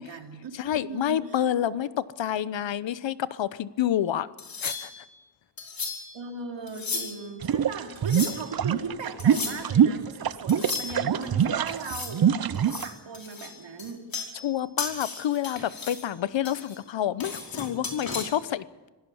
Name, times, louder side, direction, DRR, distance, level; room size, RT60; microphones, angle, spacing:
voice 1, 0.0-1.9 6.1-14.1, right 4 dB, 80° right, 4 dB, 3.3 m, -38 dB
voice 2, 0.5-1.9 2.2-4.3 4.6-4.9 14.4-18.9, left 10 dB, 85° left, 16 dB, 1.0 m, -28 dB
sound 1, 4.4-5.1 5.6-6.2 6.7-7.3 8.0-8.5 9.2-9.7 10.5-11.3 11.7-12.2 12.5-14.5 14.8-16.1 16.5-18.2, left 4 dB, 50° left, 5.4 m, -35 dB
sound 2, 7.4-12.9, right 8 dB, 55° right, 0.8 m, -23 dB
26.0 x 17.0 x 7.1 m, 1.2 s
wide cardioid pair, 110°, 43 cm